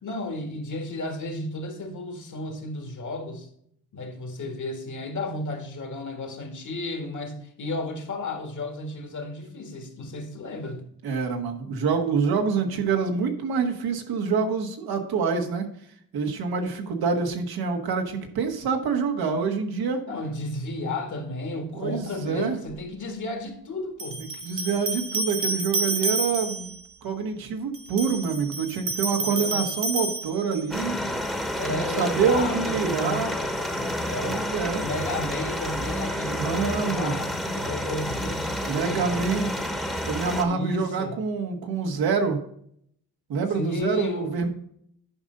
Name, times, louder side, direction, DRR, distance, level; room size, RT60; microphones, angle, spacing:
voice 1, 0.0-3.5 3.9-10.9 20.0-24.2 29.1-29.7 31.3-34.5 34.8-39.4 40.4-41.2 43.5-44.3, left 2 dB, 55° left, 1.9 m, -33 dB
voice 2, 11.0-15.7 16.1-20.0 21.7-22.6 24.4-31.0 31.6-33.3 34.2-34.8 36.4-37.2 38.7-39.5 40.0-42.4 43.3-44.5, right 5 dB, 85° right, 1.5 m, -26 dB
sound 1, 22.7-22.8 24.0-26.8 27.7-30.8, right 3 dB, 65° right, 1.5 m, -30 dB
sound 2, 30.7-40.4, equal, ahead, 1.1 m, -30 dB
10.5 x 5.3 x 3.9 m
cardioid pair, 105°, 36 cm